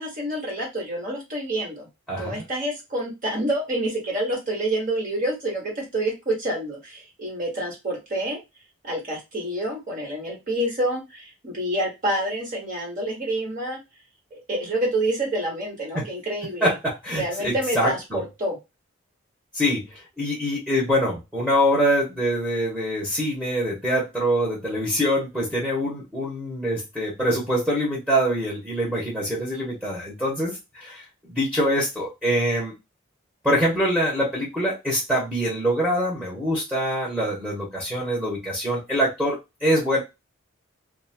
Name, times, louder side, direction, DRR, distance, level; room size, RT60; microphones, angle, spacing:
voice 1, 0.0-1.9 2.2-8.4 8.8-13.8 14.3-16.7 17.1-18.6, right 1 dB, 40° right, -1 dB, 1.4 m, -28 dB
voice 2, 2.1-2.4 15.9-16.1 16.6-18.2 19.5-32.7 33.4-40.0, equal, 5° right, -7 dB, 0.9 m, -24 dB
2.6 x 2.4 x 2.7 m, 0.23 s
head